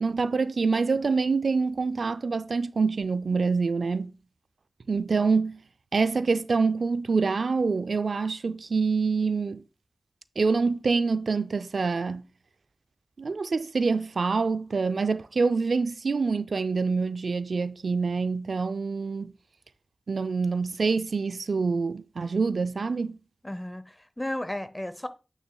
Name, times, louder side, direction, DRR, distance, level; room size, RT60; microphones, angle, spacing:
voice 1, 0.0-4.1 4.9-5.6 5.9-9.6 10.4-12.3 13.2-19.3 20.1-23.2, right 4 dB, 80° right, 0.3 m, -26 dB
voice 2, 23.4-25.1, left 1 dB, 15° left, 0.7 m, -34 dB
8.8 x 6.3 x 2.2 m
wide cardioid pair, 75°, 0 cm